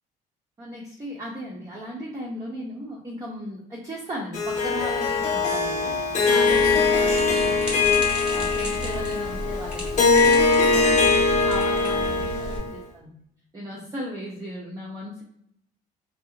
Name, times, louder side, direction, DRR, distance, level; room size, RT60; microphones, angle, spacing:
voice 1, 0.6-6.0 6.3-8.0 8.3-13.1 13.5-15.2, equal, 20° right, -4 dB, 0.7 m, -36 dB
Harp, 4.3-12.8, left 4 dB, 45° left, 0.7 m, -21 dB
sound 1, 6.5-12.6, right 1 dB, 5° right, 1.1 m, -34 dB
2.7 x 2.3 x 2.7 m, 0.73 s
cardioid pair, 110°, 17 cm